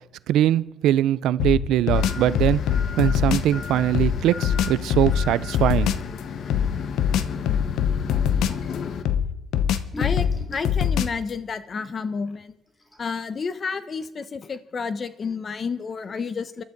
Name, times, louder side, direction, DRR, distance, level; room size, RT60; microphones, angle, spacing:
voice 1, 0.3-5.9, right 12 dB, 85° right, 0.4 m, -22 dB
sound 1, 1.4-3.5 3.9-6.1 6.5-8.7 9.0-11.3, left 8 dB, 85° left, 0.7 m, -23 dB
sound 2, 1.9-9.0, left 6 dB, 65° left, 1.2 m, -33 dB
sound 3, 9.3-9.4 9.8-10.8 11.8-11.9 12.5-12.6 12.8-13.2, equal, 20° left, 2.8 m, -38 dB
voice 2, 10.0-12.5 13.0-16.6, left 5 dB, 45° left, 1.0 m, -30 dB
26.0 x 12.0 x 3.9 m
cardioid pair, 90°, 0 cm